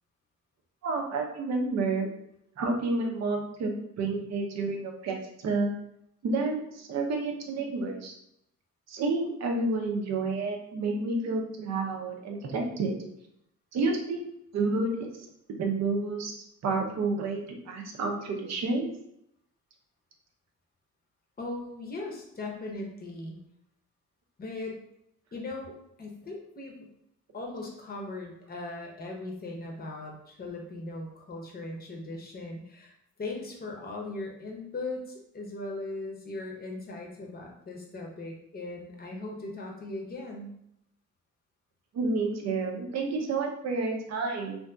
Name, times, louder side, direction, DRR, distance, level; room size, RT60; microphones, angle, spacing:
voice 1, 0.8-2.1 2.6-3.7 4.0-5.7 6.2-8.1 8.9-12.9 13.7-14.2 14.5-15.1 15.6-16.3 16.6-18.9 41.9-44.6, right 3 dB, 60° right, 2 dB, 0.6 m, -30 dB
voice 2, 21.4-23.4 24.4-24.8 25.3-26.9 27.3-32.9 33.2-40.6, left 2 dB, 30° left, 0 dB, 0.7 m, -39 dB
2.6 x 2.6 x 2.3 m, 0.76 s
cardioid pair, 90°, 30 cm